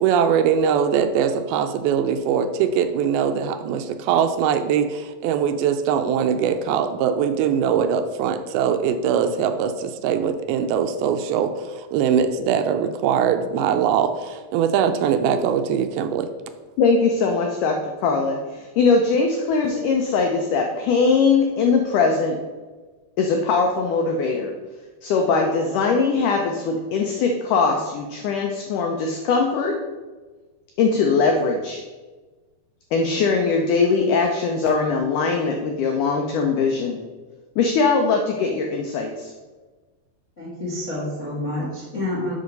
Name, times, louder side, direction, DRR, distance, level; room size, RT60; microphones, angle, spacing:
voice 1, 0.0-16.3, right 7 dB, 85° right, 9 dB, 2.4 m, -22 dB
voice 2, 16.8-22.4 23.2-24.5 25.0-29.7 30.8-31.8 32.9-37.0 37.6-39.3, left 4 dB, 85° left, 2 dB, 1.8 m, -21 dB
voice 3, 40.4-42.3, left 1 dB, 50° left, -6 dB, 0.8 m, -28 dB
6.4 x 5.6 x 5.2 m, 1.3 s
omnidirectional pair, 4.5 m